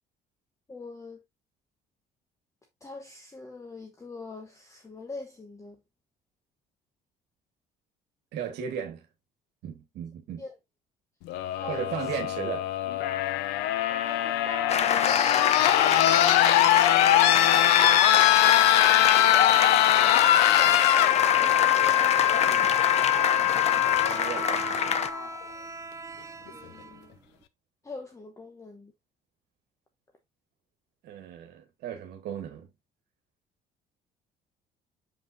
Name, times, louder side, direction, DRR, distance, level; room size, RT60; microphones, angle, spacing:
voice 1, 0.7-1.2 2.8-5.8 10.4-10.6 11.5-12.1 13.8-15.1 20.5-22.7 26.5-27.1 27.8-28.9, left 3 dB, 20° left, 1.0 m, -43 dB
voice 2, 8.3-9.1 9.6-10.4 11.7-12.7 16.0-16.4 24.1-25.1 31.0-32.7, right 8 dB, 80° right, 1.5 m, -36 dB
sound 1, 11.3-25.3 26.5-26.6, left 13 dB, 90° left, 0.6 m, -22 dB
sound 2, 14.7-25.1, left 7 dB, 40° left, 0.7 m, -26 dB
Bowed string instrument, 22.4-27.4, right 3 dB, 20° right, 0.7 m, -40 dB
7.2 x 5.3 x 2.6 m
cardioid pair, 110°, 17 cm